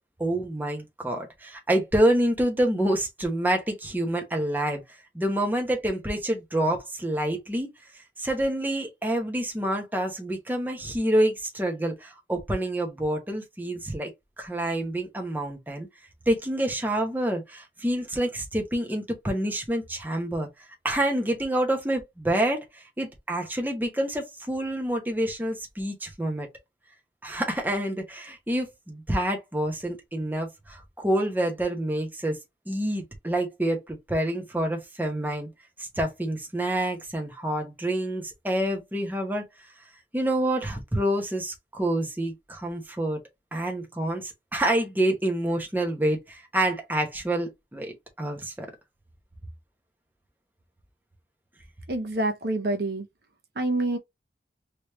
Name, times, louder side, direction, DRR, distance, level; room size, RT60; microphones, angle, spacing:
voice 1, 0.2-7.7 7.9-14.1 14.4-15.9 16.3-20.5 20.8-26.5 27.2-32.4 32.7-35.5 35.8-39.4 40.1-43.2 43.5-47.9 48.2-48.7, right 1 dB, 10° right, 0.9 m, -27 dB
voice 2, 51.9-53.1 53.6-54.0, right 2 dB, 60° right, 0.7 m, -27 dB
3.3 x 3.1 x 2.9 m
head